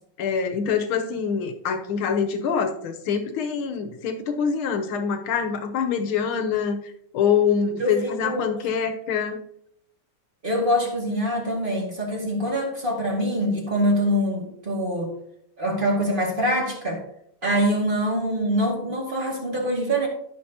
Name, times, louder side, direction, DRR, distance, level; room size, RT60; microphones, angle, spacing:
voice 1, 0.2-6.8 7.1-9.4, left 6 dB, 75° left, 6 dB, 1.7 m, -25 dB
voice 2, 7.8-8.5 10.4-15.1 15.6-17.0 17.4-20.1, equal, 25° right, -1 dB, 2.0 m, -24 dB
12.5 x 6.3 x 2.8 m, 0.71 s
omnidirectional pair, 2.4 m